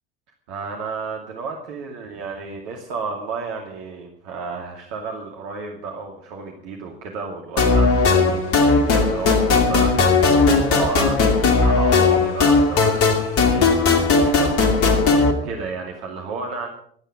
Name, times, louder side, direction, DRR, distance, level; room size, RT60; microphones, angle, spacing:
voice 1, 0.5-14.6 15.4-16.7, right 4 dB, 60° right, 1 dB, 2.5 m, -32 dB
sound 1, 7.6-15.3, left 4 dB, 50° left, 2.7 m, -17 dB
26.0 x 9.1 x 5.0 m, 0.64 s
figure-of-eight pair, 65°, 29 cm